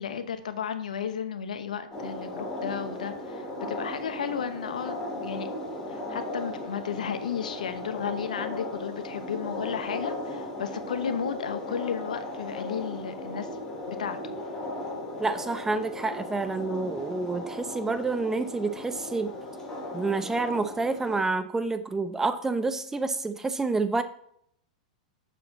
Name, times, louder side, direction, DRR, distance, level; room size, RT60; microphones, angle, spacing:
voice 1, 0.0-5.5 5.9-13.5 13.9-14.3, left 7 dB, 75° left, 10 dB, 1.0 m, -33 dB
sound 1, 1.9-21.2, left 1 dB, 15° left, 3.2 m, -37 dB
voice 2, 15.2-19.3 19.9-24.0, right 3 dB, 10° right, 11 dB, 0.8 m, -28 dB
7.3 x 7.0 x 4.2 m, 0.67 s
hypercardioid pair, 105°, 4 cm